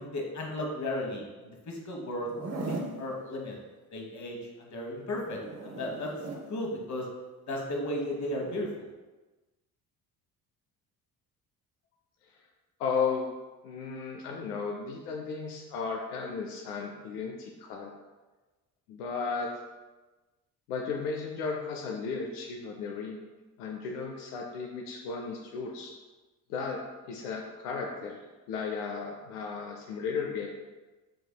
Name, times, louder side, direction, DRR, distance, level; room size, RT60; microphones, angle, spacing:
voice 1, 0.0-2.3 2.7-3.6 3.9-6.1 6.5-7.1 7.5-8.9, left 1 dB, 40° left, 0 dB, 1.2 m, -35 dB
Zipper (clothing), 2.2-3.0 5.1-6.5 8.3-8.6, right 2 dB, 35° right, 0.9 m, -38 dB
voice 2, 12.8-13.3 13.6-17.9 18.9-19.5 20.7-23.2 23.6-25.9 26.5-26.8 27.1-28.2 28.5-30.5, left 5 dB, 85° left, 1 dB, 0.6 m, -34 dB
6.7 x 3.3 x 2.2 m, 1.2 s
hypercardioid pair, 55°, 44 cm